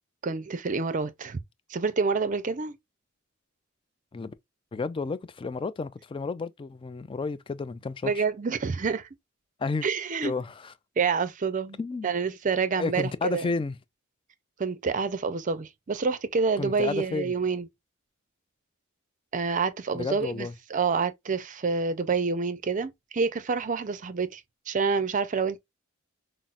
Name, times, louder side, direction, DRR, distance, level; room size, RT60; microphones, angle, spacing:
voice 1, 0.2-1.4 1.7-2.7 8.0-9.1 9.8-10.3 11.0-11.8 12.0-13.5 14.6-17.7 19.3-25.6, right 5 dB, 40° right, 0.5 m, -28 dB
voice 2, 4.7-8.2 9.6-9.9 10.2-10.7 11.8-12.1 12.8-13.8 16.6-17.3 19.9-20.5, left 4 dB, 25° left, 0.3 m, -31 dB
5.6 x 2.0 x 2.4 m
head